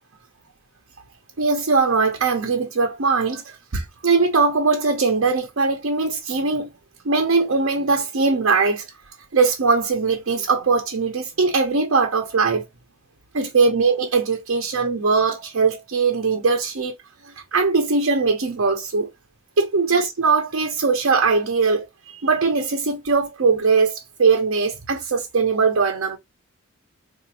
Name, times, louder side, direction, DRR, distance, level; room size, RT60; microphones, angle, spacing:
voice 1, 1.4-6.7 7.0-8.8 9.3-12.6 13.3-16.9 17.2-19.1 19.6-26.2, right 4 dB, 75° right, 0.7 m, -20 dB
3.8 x 2.4 x 2.9 m
head